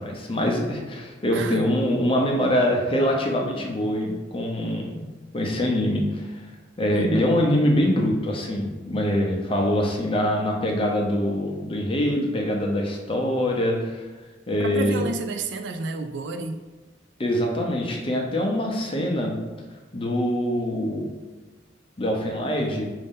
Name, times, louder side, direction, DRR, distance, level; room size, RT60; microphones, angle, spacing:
voice 1, 0.0-5.0 5.3-6.3 6.8-14.0 14.5-15.0 17.2-19.3 19.9-21.1 22.0-22.9, left 1 dB, 30° left, 0 dB, 0.7 m, -24 dB
voice 2, 1.3-1.7 6.9-7.4 14.6-16.6, right 3 dB, 75° right, 8 dB, 0.4 m, -30 dB
5.2 x 2.7 x 3.7 m, 1.2 s
head